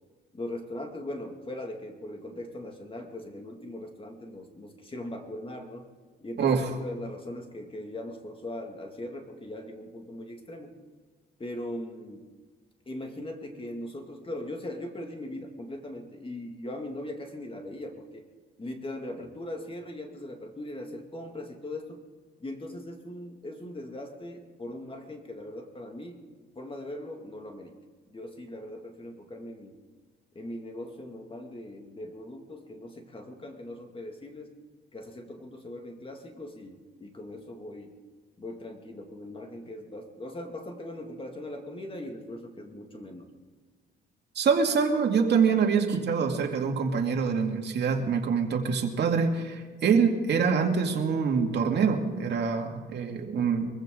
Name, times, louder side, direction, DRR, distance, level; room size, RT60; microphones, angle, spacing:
voice 1, 0.3-5.9 6.2-10.8 11.4-12.3 12.9-18.2 18.6-22.1 22.4-26.2 26.6-27.8 28.1-29.8 30.3-34.6 34.9-38.0 38.4-43.3 53.3-53.5, left 1 dB, 25° left, 3 dB, 2.3 m, -40 dB
voice 2, 6.4-6.7 44.3-53.7, right 5 dB, 60° right, 2 dB, 2.4 m, -25 dB
23.5 x 15.0 x 3.9 m, 1.5 s
cardioid pair, 90°, 20 cm